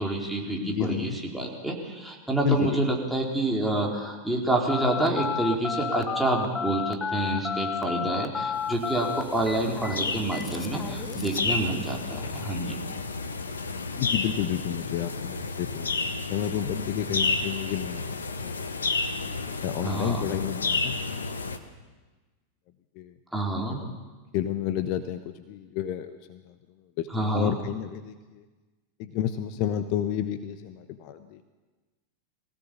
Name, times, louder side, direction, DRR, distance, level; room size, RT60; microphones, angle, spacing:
voice 1, 0.0-12.8 19.8-20.3 23.3-23.8 27.1-27.5, right 2 dB, 5° right, -2 dB, 4.3 m, -28 dB
voice 2, 0.6-1.2 2.4-2.8 13.9-18.6 19.5-21.0 23.0-23.1 23.7-24.0 24.3-26.5 27.0-28.4 29.0-31.4, left 10 dB, 45° left, 10 dB, 1.1 m, -31 dB
Telephone, 4.7-11.5, left 6 dB, 15° left, 1.1 m, -32 dB
sound 1, 8.6-21.6, left 3 dB, 75° left, 1.4 m, -31 dB
23.5 x 17.0 x 7.3 m, 1.3 s
figure-of-eight pair, 90°, 0 cm